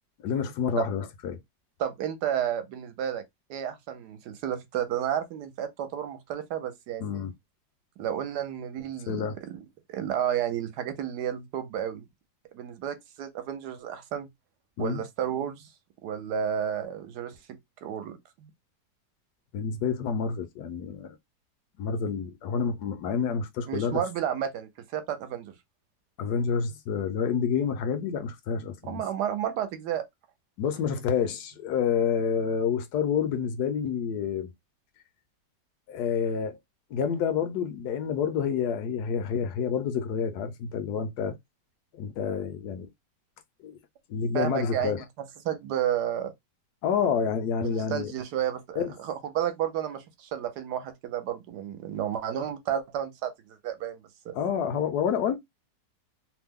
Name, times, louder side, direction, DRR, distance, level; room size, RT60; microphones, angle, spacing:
voice 1, 0.2-1.4 7.0-7.3 9.1-9.3 14.8-15.0 19.5-21.2 21.8-24.0 26.2-29.0 30.6-34.5 35.9-36.6 36.9-41.3 41.9-42.9 43.6-43.8 44.1-45.0 46.8-48.1 48.8-48.9 54.3-55.4, left 7 dB, 70° left, 1.1 m, -28 dB
voice 2, 1.8-3.2 3.5-7.2 8.0-12.0 12.5-14.3 14.8-15.7 16.0-18.5 23.7-25.5 28.9-30.0 44.3-45.0 45.4-46.3 47.6-54.3, right 10 dB, 75° right, 1.2 m, -32 dB
3.1 x 2.0 x 3.5 m
omnidirectional pair, 1.9 m